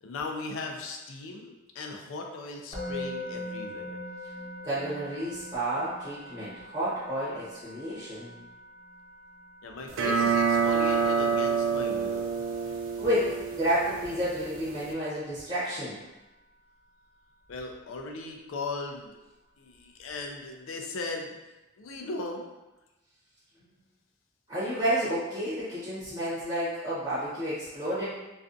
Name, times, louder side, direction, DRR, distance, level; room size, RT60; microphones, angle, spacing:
voice 1, 0.0-4.0 9.6-12.4 17.5-19.1 19.6-21.3 21.8-22.4, left 3 dB, 70° left, 3 dB, 0.4 m, -38 dB
Musical instrument, 2.7-13.8, left 1 dB, 30° left, 1.0 m, -43 dB
voice 2, 4.6-8.3 13.0-16.0 24.5-28.0, right 1 dB, 20° right, -12 dB, 0.7 m, -30 dB
sound 1, 9.9-14.9, right 6 dB, 60° right, 0.3 m, -28 dB
2.4 x 2.3 x 2.5 m, 1.1 s
head